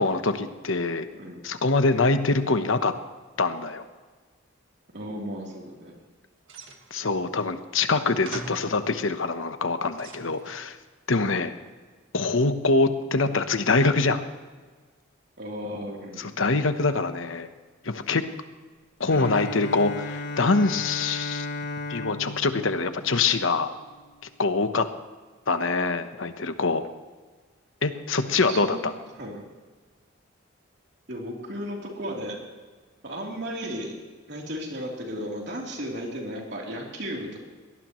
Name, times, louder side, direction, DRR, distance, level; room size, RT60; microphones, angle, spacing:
voice 1, 0.0-1.1 1.4-2.9 3.4-3.8 6.9-10.8 11.1-11.5 12.1-14.2 16.2-17.5 17.8-18.3 19.0-21.5 21.9-23.7 24.4-24.9 25.5-26.8 27.8-28.9, left 3 dB, 75° left, 9 dB, 1.0 m, -24 dB
voice 2, 4.9-5.9 11.2-11.4 15.4-16.3 28.2-28.8 29.2-29.5 31.1-32.4 33.0-33.9 34.3-37.4, equal, 55° right, -1 dB, 3.4 m, -35 dB
sound 1, 6.4-7.2 7.9-8.0 8.2-8.7 9.5-10.6, right 3 dB, 75° right, 1.8 m, -42 dB
Bowed string instrument, 19.1-23.9, left 2 dB, 55° left, 1.2 m, -35 dB
22.5 x 18.5 x 3.1 m, 1.4 s
head